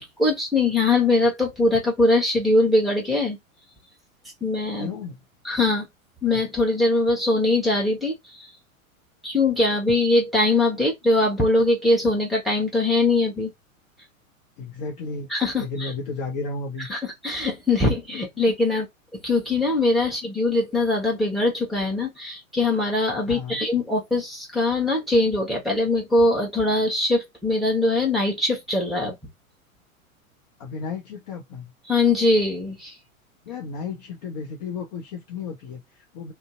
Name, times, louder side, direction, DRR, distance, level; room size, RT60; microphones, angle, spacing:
voice 1, 0.2-3.4 4.4-4.9 5.4-5.9 6.2-8.5 9.2-13.5 15.3-15.9 16.9-18.9 19.2-29.1 31.9-32.9, left 2 dB, ahead, 1.1 m, -22 dB
voice 2, 4.8-5.2 14.6-15.3 15.6-16.9 23.2-23.6 30.6-31.7 33.4-36.3, left 4 dB, 30° left, 0.6 m, -33 dB
2.6 x 2.1 x 3.6 m
figure-of-eight pair, 100°, 42 cm